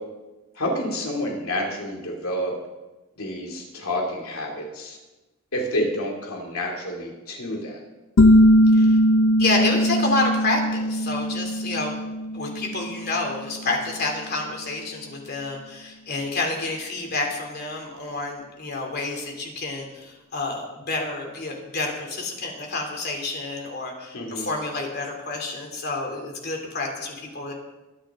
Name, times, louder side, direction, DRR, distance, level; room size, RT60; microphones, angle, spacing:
voice 1, 0.5-2.5 3.2-5.0 5.5-7.8 24.1-24.5, left 1 dB, 85° left, 0 dB, 2.6 m, -29 dB
sound 1, 8.2-13.6, equal, 65° left, 0.6 m, -20 dB
voice 2, 9.4-12.0 12.3-27.5, left 2 dB, 50° left, 1 dB, 3.0 m, -29 dB
23.0 x 10.0 x 3.7 m, 1.1 s
head